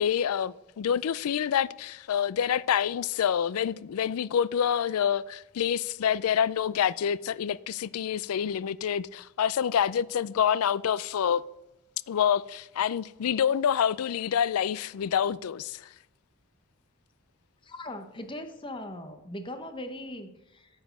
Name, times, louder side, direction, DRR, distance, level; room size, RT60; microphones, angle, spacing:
voice 1, 0.0-11.4 12.1-15.9, left 8 dB, 85° left, 0.4 m, -27 dB
voice 2, 17.7-20.7, left 1 dB, 20° left, 0.8 m, -39 dB
8.9 x 7.2 x 6.4 m
head